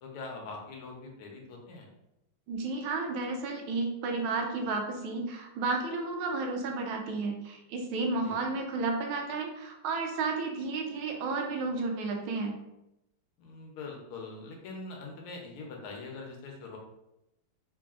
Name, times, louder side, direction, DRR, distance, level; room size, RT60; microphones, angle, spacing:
voice 1, 0.0-1.9 8.2-8.4 13.4-16.8, left 3 dB, 80° left, 1 dB, 1.7 m, -43 dB
voice 2, 2.5-12.5, right 3 dB, 75° right, 3 dB, 1.4 m, -32 dB
3.9 x 3.3 x 2.4 m, 0.87 s
omnidirectional pair, 2.4 m